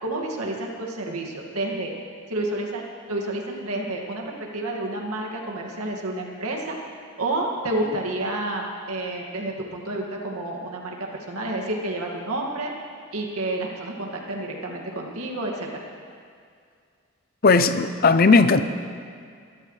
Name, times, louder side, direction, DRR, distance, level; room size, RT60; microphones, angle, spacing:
voice 1, 0.0-1.9 2.3-2.8 3.1-6.8 7.2-12.7 13.1-15.8, right 2 dB, 90° right, 0 dB, 2.1 m, -29 dB
voice 2, 17.4-18.6, left 4 dB, 40° left, 11 dB, 0.5 m, -16 dB
23.0 x 13.0 x 3.3 m, 2.2 s
head